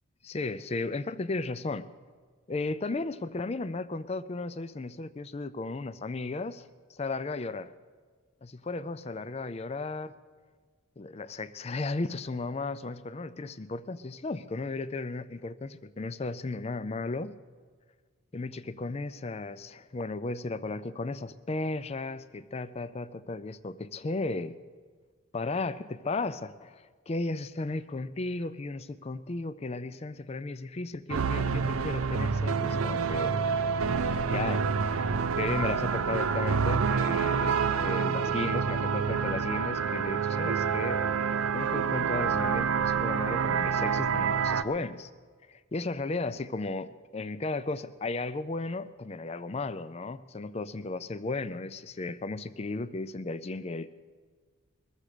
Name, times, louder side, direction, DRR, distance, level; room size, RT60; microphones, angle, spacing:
voice 1, 0.2-1.9 2.5-7.7 8.4-10.2 11.0-17.3 18.3-24.6 25.3-33.3 34.3-41.0 41.5-45.1 45.5-53.9, left 3 dB, 30° left, 14 dB, 0.4 m, -35 dB
sound 1, 31.1-44.6, right 6 dB, 85° right, 0.5 m, -27 dB
21.5 x 7.3 x 6.6 m, 1.6 s
head